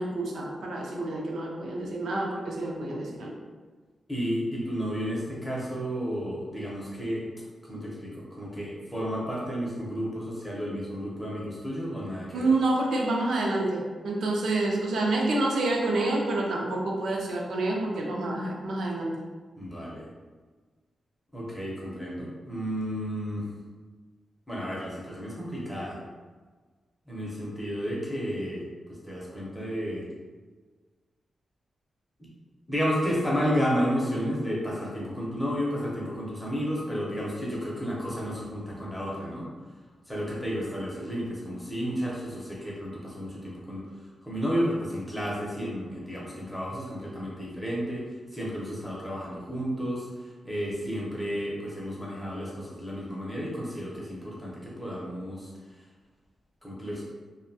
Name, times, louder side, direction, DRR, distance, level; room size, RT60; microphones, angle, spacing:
voice 1, 0.0-3.3 12.3-19.2, right 2 dB, 85° right, -2 dB, 0.5 m, -28 dB
voice 2, 4.1-7.2 7.6-12.5 19.6-20.1 21.3-23.5 24.5-26.0 27.1-28.6 28.9-30.0 32.2-32.3 32.7-39.5 40.1-43.9 44.2-55.5 56.6-57.0, equal, 5° left, -5 dB, 0.6 m, -32 dB
2.6 x 2.1 x 2.6 m, 1.4 s
wide cardioid pair, 155°, 0 cm